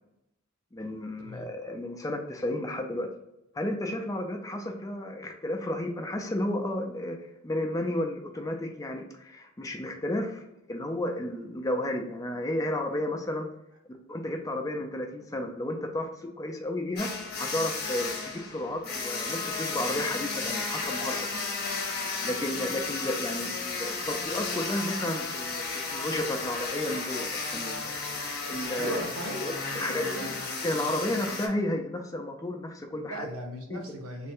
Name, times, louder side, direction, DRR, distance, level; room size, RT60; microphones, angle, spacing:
voice 1, 0.7-3.1 3.5-7.2 7.4-13.5 14.1-17.1 17.4-18.1 18.4-21.4 22.2-25.6 25.9-27.9 28.5-29.0 29.4-30.0 30.6-33.3 33.7-34.0, left 1 dB, 15° left, 3 dB, 0.4 m, -32 dB
sound 1, 17.0-31.5, left 4 dB, 50° left, 0.9 m, -33 dB
voice 2, 28.8-30.4 32.9-34.3, right 1 dB, 85° right, 3 dB, 0.8 m, -38 dB
3.2 x 2.2 x 4.3 m, 0.85 s
head